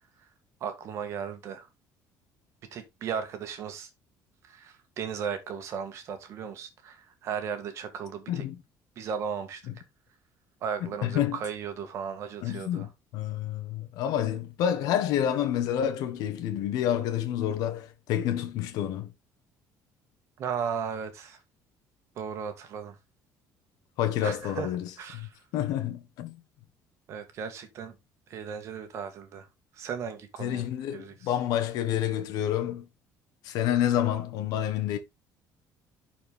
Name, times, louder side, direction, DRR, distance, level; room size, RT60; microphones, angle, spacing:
voice 1, 0.6-1.7 2.7-3.9 4.4-8.5 9.0-9.6 10.6-12.9 20.4-21.4 22.2-23.0 24.2-24.7 25.0-25.4 27.1-28.0 28.3-29.5 29.7-30.6 30.9-31.3, right 7 dB, 45° right, 1.7 m, -36 dB
voice 2, 11.0-11.4 12.4-19.1 24.0-24.8 25.1-25.3 25.5-26.4 30.4-32.9 33.4-35.0, left 10 dB, 70° left, 1.4 m, -28 dB
11.0 x 4.6 x 3.6 m
cardioid pair, 175°, 7 cm